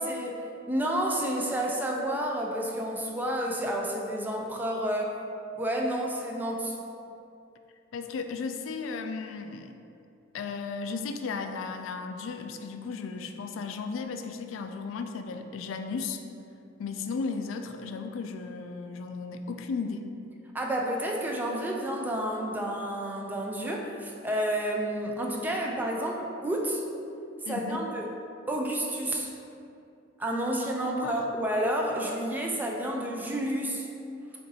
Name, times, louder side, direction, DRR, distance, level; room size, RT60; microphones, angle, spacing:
voice 1, 0.0-5.1 5.6-6.8 20.5-26.8 27.4-28.1 28.5-29.3 30.2-33.9, right 1 dB, 10° right, 0 dB, 0.4 m, -30 dB
voice 2, 7.9-9.8 10.3-16.2 16.8-20.1 27.5-27.8 30.8-31.2, left 4 dB, 80° left, 7 dB, 0.3 m, -35 dB
6.6 x 2.5 x 2.7 m, 2.6 s
head